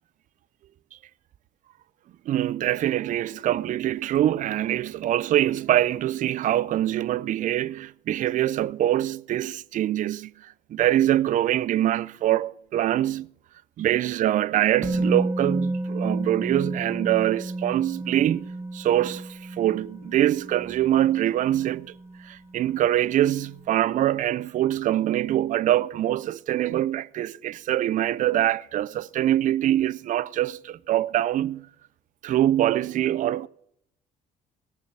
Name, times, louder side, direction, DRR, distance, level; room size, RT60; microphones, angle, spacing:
voice 1, 2.3-13.3 13.8-18.4 18.7-21.9 22.2-31.7 32.2-33.5, right 12 dB, 50° right, 0.4 m, -24 dB
Musical instrument, 14.8-22.7 23.0-23.2, right 2 dB, 15° right, 1.2 m, -31 dB
18.0 x 6.7 x 6.1 m
cardioid pair, 110°, 17 cm